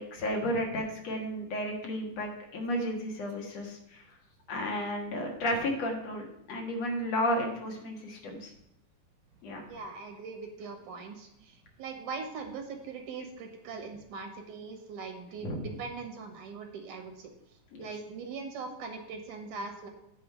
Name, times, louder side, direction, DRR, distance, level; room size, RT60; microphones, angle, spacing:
voice 1, 0.0-4.0 4.5-8.5 9.4-9.7 15.4-15.7 17.7-17.9, equal, 60° left, 1 dB, 2.5 m, -33 dB
voice 2, 9.7-17.3 17.8-19.9, right 4 dB, 75° right, 5 dB, 2.7 m, -41 dB
9.5 x 4.6 x 7.6 m, 0.83 s
omnidirectional pair, 3.7 m